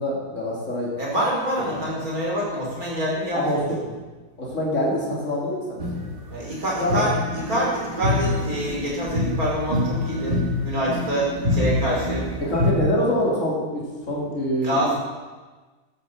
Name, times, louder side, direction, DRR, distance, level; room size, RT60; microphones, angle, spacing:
voice 1, 0.0-0.9 3.3-3.8 4.4-6.1 6.8-7.0 12.4-14.9, equal, 40° left, -4 dB, 3.8 m, -25 dB
voice 2, 1.0-3.6 6.3-12.2 14.6-15.0, right 1 dB, 50° right, -4 dB, 5.6 m, -26 dB
sound 1, 5.8-6.2 6.5-12.7, left 2 dB, 25° right, 2.0 m, -26 dB
13.0 x 11.5 x 7.8 m, 1.3 s
omnidirectional pair, 2.0 m